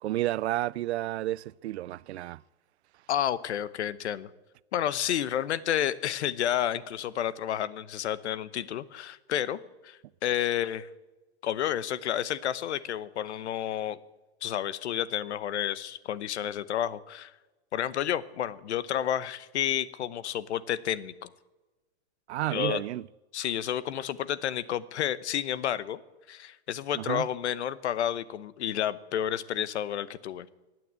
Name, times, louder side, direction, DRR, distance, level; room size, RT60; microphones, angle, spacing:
voice 1, 0.0-2.4 22.3-23.1 26.9-27.3, right 15 dB, 75° right, 0.5 m, -31 dB
voice 2, 3.1-4.3 4.7-10.9 11.4-14.0 14.4-17.3 17.7-21.3 22.5-22.8 23.3-26.0 26.3-30.5, left 10 dB, 80° left, 1.0 m, -30 dB
16.5 x 9.2 x 8.1 m
supercardioid pair, 180°, 33 cm